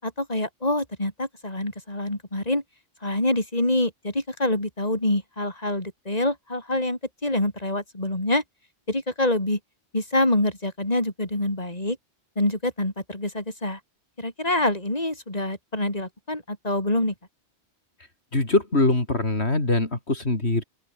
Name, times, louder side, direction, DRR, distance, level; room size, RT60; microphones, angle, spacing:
voice 1, 0.0-2.6 3.0-8.4 8.9-9.6 9.9-12.0 12.3-13.8 14.2-17.1, left 1 dB, 35° left, 5.3 m, -26 dB
voice 2, 18.3-20.6, left 2 dB, 70° left, 4.4 m, -23 dB
open air
omnidirectional pair, 1.2 m